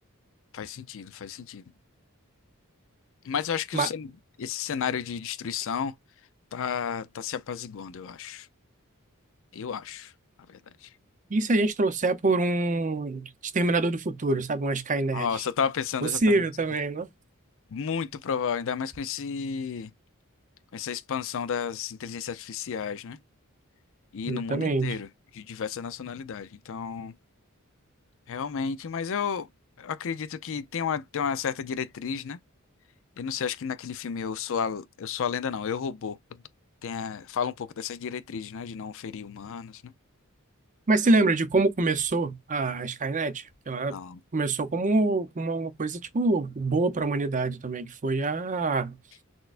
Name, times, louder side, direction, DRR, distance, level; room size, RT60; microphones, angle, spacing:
voice 1, 0.5-1.6 3.2-4.1 4.4-5.9 6.5-8.5 9.5-10.1 10.5-10.9 15.1-16.4 17.7-19.9 20.7-23.2 24.1-25.1 25.3-27.2 28.3-29.5 29.8-32.4 33.2-36.4 36.8-39.9 43.9-44.2, left 7 dB, 65° left, 0.5 m, -32 dB
voice 2, 11.3-15.3 16.0-17.1 24.3-25.0 40.9-44.0 44.3-49.0, right 2 dB, 35° right, 0.6 m, -26 dB
6.1 x 2.2 x 2.4 m
head